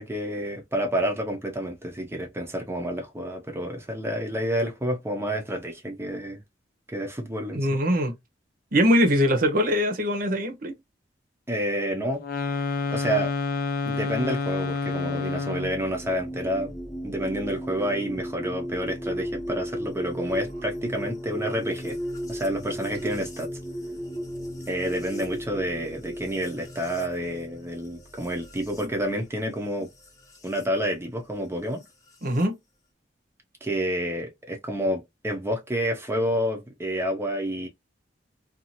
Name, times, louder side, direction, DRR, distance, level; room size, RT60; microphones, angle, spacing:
voice 1, 0.0-6.4 6.9-7.7 11.5-12.2 12.9-13.3 13.9-16.7 17.0-22.0 22.3-23.5 24.7-29.9 30.4-31.8 33.6-37.7, equal, 15° right, 0.6 m, -29 dB
voice 2, 7.5-8.1 8.7-10.8 28.8-28.9 32.2-32.5, equal, 50° right, 0.8 m, -22 dB
sound 1, 12.2-15.8, left 4 dB, 55° left, 0.5 m, -28 dB
sound 2, 15.6-30.7 31.8-32.4, equal, 20° left, 0.7 m, -36 dB
2.6 x 2.4 x 2.8 m
head